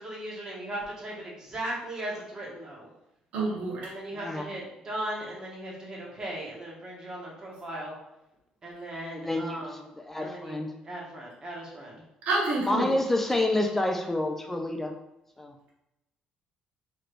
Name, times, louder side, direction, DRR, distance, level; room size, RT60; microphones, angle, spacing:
voice 1, 0.0-2.9 3.8-7.9 8.6-9.9 10.2-12.0, right 1 dB, 30° right, -4 dB, 0.9 m, -38 dB
voice 2, 3.3-3.9 12.3-12.9, right 2 dB, 75° right, -4 dB, 1.0 m, -27 dB
voice 3, 4.1-4.5 9.1-10.7 12.6-14.9 15.4-15.5, left 1 dB, 10° left, 4 dB, 0.3 m, -28 dB
3.1 x 3.0 x 2.5 m, 0.87 s
cardioid pair, 145°, 2 cm